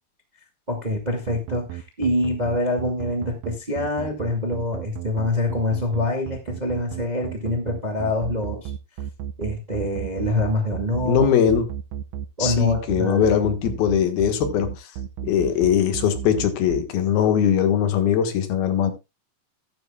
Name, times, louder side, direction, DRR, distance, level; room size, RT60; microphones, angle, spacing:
voice 1, 0.7-8.7 9.4-11.3 12.4-13.3, left 1 dB, 20° right, 1.1 m, -25 dB
sound 1, 1.3-16.8, right 10 dB, 80° right, 1.8 m, -32 dB
voice 2, 11.0-11.7 12.4-14.9 15.2-18.9, left 8 dB, 90° left, 3.4 m, -21 dB
14.5 x 11.5 x 2.3 m
omnidirectional pair, 4.2 m